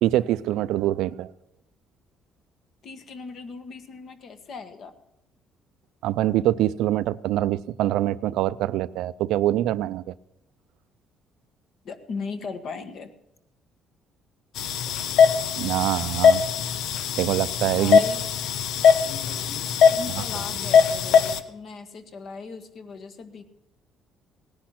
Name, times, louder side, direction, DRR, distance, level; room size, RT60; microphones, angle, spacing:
voice 1, 0.0-1.3 6.0-10.1 15.6-16.4 17.2-18.0, right 14 dB, 85° right, 0.5 m, -24 dB
voice 2, 2.8-4.9 11.8-13.1 16.4-16.5 17.7-18.2 19.9-23.4, left 4 dB, 50° left, 1.4 m, -38 dB
sound 1, 14.6-21.4, left 7 dB, 75° left, 0.8 m, -21 dB
18.0 x 10.5 x 5.9 m
cardioid pair, 145°, 0 cm